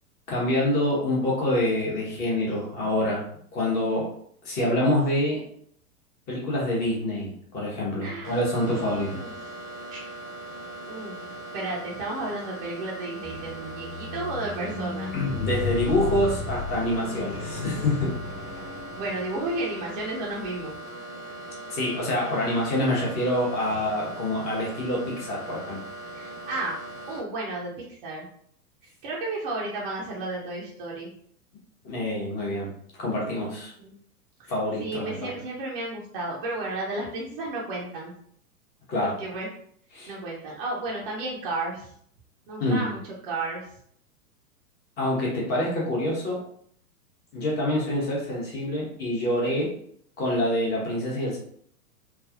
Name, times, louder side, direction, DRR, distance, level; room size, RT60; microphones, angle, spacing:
voice 1, 0.3-3.2 3.5-4.1 4.4-5.4 6.3-9.2 15.1-18.2 21.7-25.8 31.8-32.7 33.0-33.7 34.5-35.3 38.9-39.1 39.9-40.1 42.6-42.9 45.0-46.4 47.3-49.7 50.2-51.4, left 1 dB, 20° left, -4 dB, 0.9 m, -26 dB
voice 2, 8.0-8.4 8.7-9.3 9.9-10.0 10.8-11.1 11.5-15.1 19.0-20.7 26.1-27.7 28.0-28.3 29.0-31.1 33.8-33.9 34.8-38.1 39.0-39.5 40.1-41.9 42.5-43.7, right 2 dB, 35° right, -4 dB, 0.6 m, -33 dB
sound 1, 8.2-27.2, right 1 dB, 90° right, 1.2 m, -40 dB
Squeak, 13.2-19.6 20.3-20.5, left 4 dB, 70° left, 1.1 m, -34 dB
3.2 x 2.3 x 2.4 m, 0.63 s
figure-of-eight pair, 105°, 46 cm